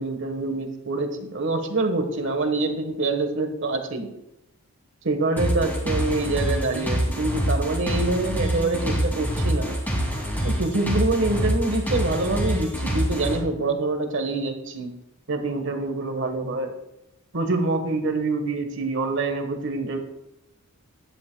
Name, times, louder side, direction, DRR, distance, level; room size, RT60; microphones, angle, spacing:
voice 1, 0.0-4.1 5.0-9.8 10.4-14.9 15.3-16.7 17.3-20.0, right 2 dB, 55° right, 7 dB, 1.3 m, -26 dB
sound 1, 5.4-13.4, equal, 10° left, 2.6 m, -26 dB
14.5 x 10.5 x 2.3 m, 0.87 s
head